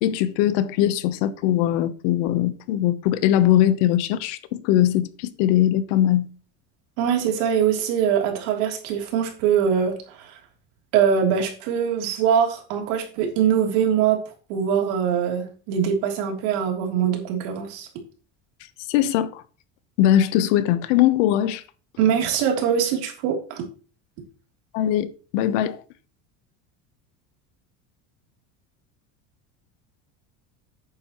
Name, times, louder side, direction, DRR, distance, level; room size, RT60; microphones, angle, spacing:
voice 1, 0.0-6.3 18.9-19.4 20.0-21.6 24.7-25.8, left 12 dB, 80° left, 1.1 m, -21 dB
voice 2, 7.0-10.4 10.9-14.2 14.5-17.9 22.0-23.6, right 8 dB, 70° right, 3.3 m, -22 dB
11.0 x 8.8 x 3.1 m
cardioid pair, 180°, 36 cm